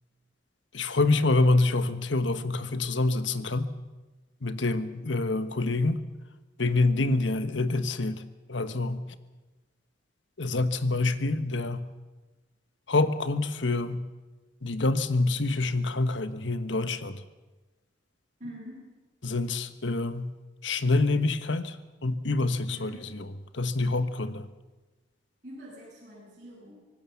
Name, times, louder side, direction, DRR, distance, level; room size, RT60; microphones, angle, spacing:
voice 1, 0.7-3.7 4.4-6.0 6.6-8.2 8.5-9.0 10.4-11.9 12.9-14.0 14.6-17.2 19.2-20.3 20.6-21.7 22.0-23.2 23.5-24.5, left 2 dB, 85° left, 11 dB, 1.3 m, -26 dB
voice 2, 6.9-7.3 18.4-18.9 22.7-23.2 25.4-26.7, equal, 40° right, -7 dB, 7.9 m, -44 dB
25.0 x 19.0 x 7.2 m, 1.2 s
head